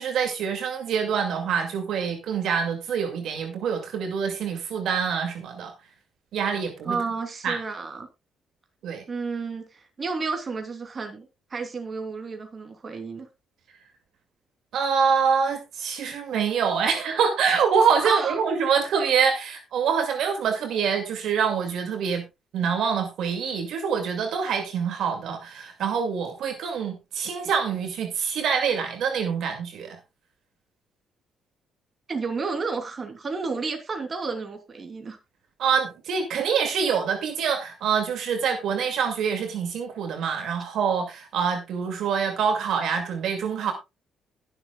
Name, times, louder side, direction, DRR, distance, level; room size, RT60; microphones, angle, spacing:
voice 1, 0.0-5.7 6.3-7.0 7.4-7.6 8.8-9.0 14.7-22.2 22.5-30.0 35.6-43.7, right 6 dB, 75° right, 5 dB, 2.3 m, -25 dB
voice 2, 6.8-8.1 9.1-13.3 18.0-18.4 32.1-35.2, right 4 dB, 35° right, 5 dB, 3.2 m, -31 dB
20.5 x 7.4 x 2.3 m, 0.24 s
cardioid pair, 90°, 0 cm